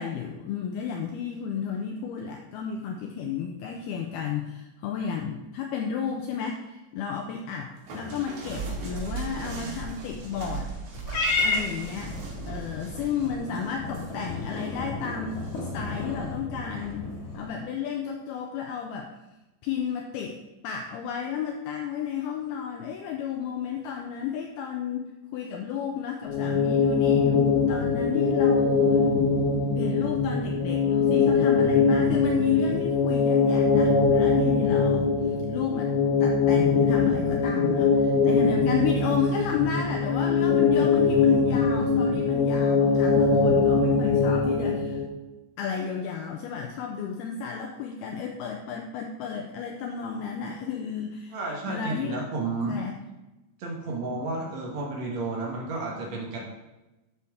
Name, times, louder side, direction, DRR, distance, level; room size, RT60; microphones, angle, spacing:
voice 1, 0.0-10.7 11.4-12.2 12.5-15.4 15.7-19.1 19.6-25.0 25.3-28.8 29.2-29.3 29.8-36.0 36.2-45.0 45.6-51.4 51.7-52.2 52.7-52.9, left 7 dB, 85° left, 3 dB, 2.2 m, -32 dB
sound 1, 7.9-14.9 15.3-16.0 16.8-17.1, right 3 dB, 75° right, 4.4 m, -38 dB
Purr / Meow, 11.1-17.6, left 3 dB, 50° left, 1.9 m, -32 dB
sound 2, 26.3-45.1, left 5 dB, 65° left, 2.3 m, -22 dB
voice 2, 51.3-52.8 53.6-56.4, right 3 dB, 90° right, -2 dB, 1.5 m, -32 dB
12.0 x 6.9 x 3.6 m, 1.0 s
omnidirectional pair, 5.2 m